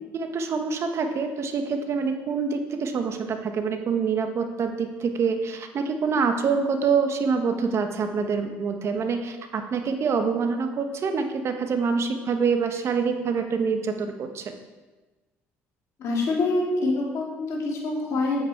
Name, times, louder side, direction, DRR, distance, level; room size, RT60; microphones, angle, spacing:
voice 1, 0.1-14.4, right 5 dB, 50° right, 6 dB, 1.3 m, -26 dB
voice 2, 16.0-18.4, left 2 dB, 60° left, -3 dB, 3.3 m, -25 dB
8.6 x 8.2 x 4.7 m, 1.2 s
supercardioid pair, 80°, 6 cm